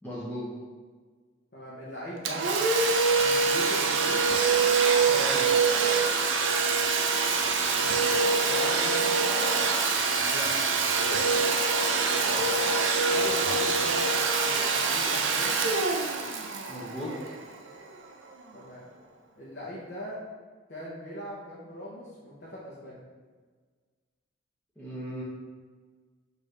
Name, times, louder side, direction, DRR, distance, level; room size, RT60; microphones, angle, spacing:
voice 1, 0.0-0.5 5.1-5.5 10.3-10.6 11.0-11.4 16.7-17.3 24.8-25.2, equal, 10° left, -9 dB, 0.7 m, -37 dB
voice 2, 1.5-2.4 3.2-4.3 7.7-8.1 8.4-9.5 12.1-12.6 13.1-14.1 14.3-15.6 18.5-18.8 19.4-20.2 20.7-23.0, equal, 50° left, -7 dB, 0.8 m, -40 dB
Domestic sounds home sounds, 2.2-17.7, right 4 dB, 70° right, 0.5 m, -25 dB
6.3 x 2.7 x 3.2 m, 1.5 s
head